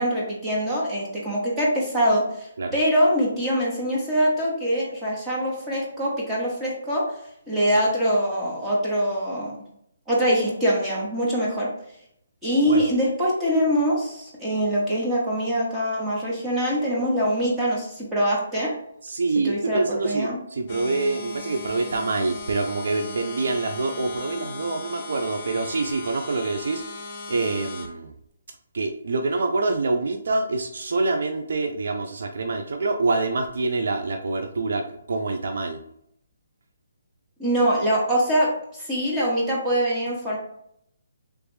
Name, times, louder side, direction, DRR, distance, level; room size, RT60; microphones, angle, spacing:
voice 1, 0.0-7.0 7.5-9.6 10.1-11.7 12.4-18.7 19.4-20.4 37.4-38.5 38.8-40.4, equal, 10° right, -6 dB, 1.0 m, -23 dB
voice 2, 19.0-26.8 27.3-28.1 28.7-35.8, right 3 dB, 70° right, 5 dB, 0.4 m, -26 dB
sound 1, 20.7-27.9, left 3 dB, 35° left, 0.7 m, -37 dB
3.1 x 3.0 x 3.2 m, 0.73 s
hypercardioid pair, 155°, 0 cm